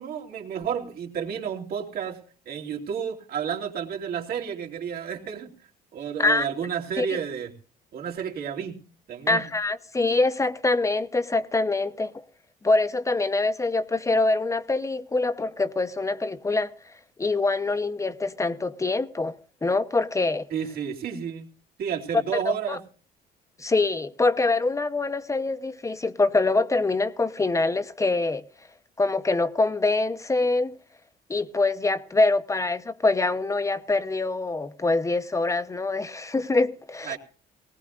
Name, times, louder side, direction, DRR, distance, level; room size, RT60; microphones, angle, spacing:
voice 1, 0.0-5.5 5.9-7.5 7.9-8.8 9.1-9.5 20.5-21.5 21.8-22.8 37.0-37.2, right 8 dB, 65° right, 3.1 m, -31 dB
voice 2, 9.3-12.1 12.6-16.7 17.2-19.3 19.6-20.4 22.5-22.8 23.6-28.4 29.0-30.8 31.3-37.2, left 3 dB, 20° left, 0.8 m, -24 dB
19.0 x 18.5 x 2.5 m
cardioid pair, 110°, 17 cm